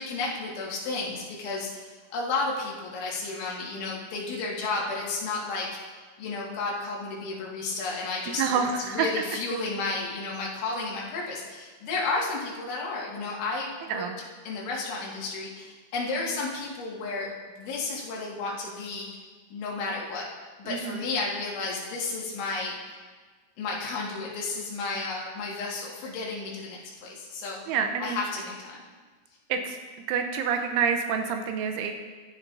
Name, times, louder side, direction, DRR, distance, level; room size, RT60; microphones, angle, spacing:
voice 1, 0.0-5.7 6.2-8.4 8.8-14.1 14.5-17.3 17.6-19.1 19.5-20.3 20.6-23.0 23.6-27.6 28.0-28.8, left 3 dB, 70° left, -4 dB, 4.1 m, -32 dB
voice 2, 8.4-9.1 13.9-14.2 20.7-21.0 27.7-28.2 29.5-29.8 30.1-31.9, right 6 dB, 80° right, 5 dB, 3.1 m, -27 dB
14.5 x 12.0 x 2.6 m, 1.4 s
omnidirectional pair, 5.7 m